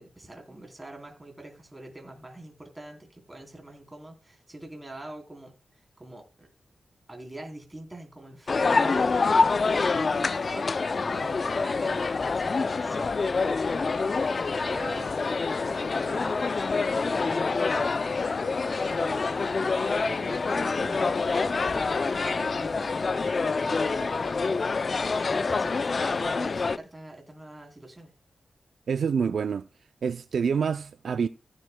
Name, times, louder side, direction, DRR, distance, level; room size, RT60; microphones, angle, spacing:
voice 1, 0.0-6.5 7.1-17.8 18.3-24.6 24.9-28.1, right 1 dB, 15° right, 3.6 m, -44 dB
Food mkt ambience, 8.5-26.8, left 4 dB, 50° left, 0.4 m, -26 dB
voice 2, 28.9-29.7 30.0-31.3, right 6 dB, 75° right, 0.4 m, -27 dB
15.5 x 9.1 x 2.2 m
wide cardioid pair, 95°, 0 cm